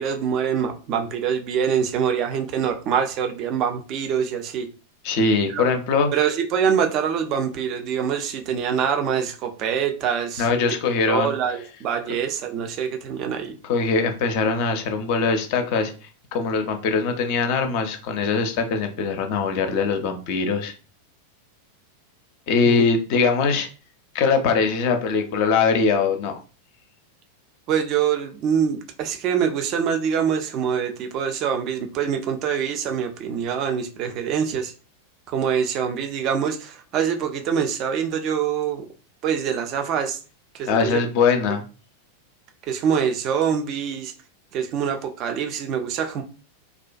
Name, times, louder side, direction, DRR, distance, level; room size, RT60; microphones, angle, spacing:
voice 1, 0.0-4.7 5.5-5.7 6.1-10.5 11.1-13.6 22.7-22.8 27.7-34.7 35.3-38.9 39.2-40.2 40.5-41.0 42.7-44.1 44.5-46.2, right 7 dB, 35° right, 0.4 m, -24 dB
voice 2, 5.0-6.1 10.4-11.3 13.7-15.9 16.3-20.7 22.5-23.7 24.1-26.3 40.7-41.6, left 4 dB, 45° left, 0.4 m, -22 dB
2.4 x 2.1 x 2.5 m
figure-of-eight pair, 90°, 0 cm